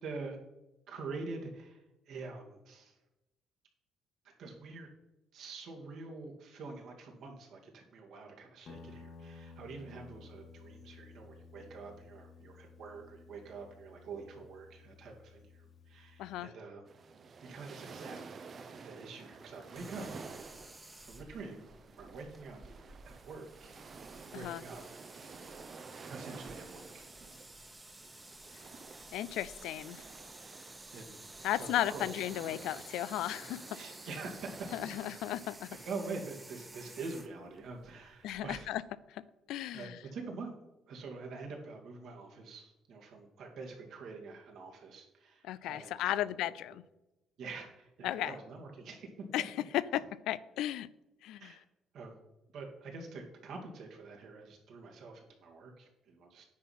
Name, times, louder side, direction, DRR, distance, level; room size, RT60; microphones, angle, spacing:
voice 1, 0.0-0.4 0.9-3.0 4.4-4.9 5.3-16.8 17.4-20.3 21.0-22.6 23.1-23.7 24.3-25.0 26.1-27.1 30.4-31.2 31.5-32.3 33.7-34.9 35.5-38.7 39.7-40.5 40.9-46.5 47.4-49.1 51.4-51.6 51.9-52.2 52.5-56.4, right 3 dB, 70° right, 1 dB, 2.0 m, -46 dB
Guitar, 8.6-16.5, left 4 dB, 60° left, 1.5 m, -55 dB
voice 2, 16.2-16.5 24.3-24.6 29.1-30.0 31.4-33.7 34.7-35.8 38.2-38.8 39.1-39.2 39.5-40.0 45.4-46.8 48.0-48.3 49.3-50.9 51.2-51.6, left 13 dB, 80° left, 18 dB, 0.3 m, -35 dB
sound 1, 16.9-35.9, right 5 dB, 50° right, 0.7 m, -51 dB
sound 2, 19.8-38.7, right 2 dB, 15° right, 1.1 m, -53 dB
9.6 x 4.1 x 5.6 m, 0.94 s
supercardioid pair, 65°, 0 cm